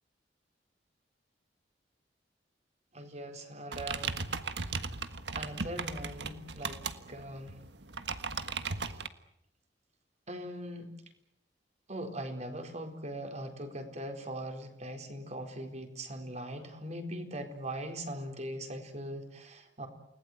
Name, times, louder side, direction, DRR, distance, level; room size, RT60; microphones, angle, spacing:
voice 1, 2.9-4.3 5.3-7.6 8.7-9.0 10.3-10.9 11.9-19.9, right 1 dB, 40° right, 5 dB, 4.1 m, -41 dB
sound 1, 3.7-9.1, right 4 dB, 75° right, 1.6 m, -37 dB
29.0 x 19.5 x 9.3 m, 0.77 s
head